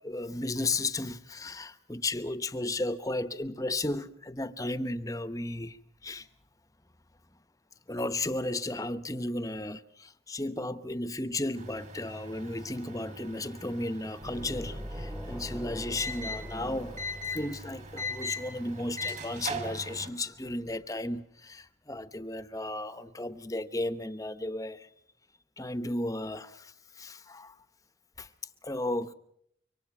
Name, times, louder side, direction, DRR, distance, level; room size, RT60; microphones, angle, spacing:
voice 1, 0.0-6.3 7.9-24.9 25.6-27.6 28.2-28.3 28.6-29.1, left 2 dB, 20° left, 0.9 m, -34 dB
sound 1, 11.6-20.1, left 1 dB, 35° right, 2.6 m, -40 dB
sound 2, 14.2-18.0, equal, 5° right, 1.1 m, -41 dB
26.0 x 24.5 x 5.9 m
head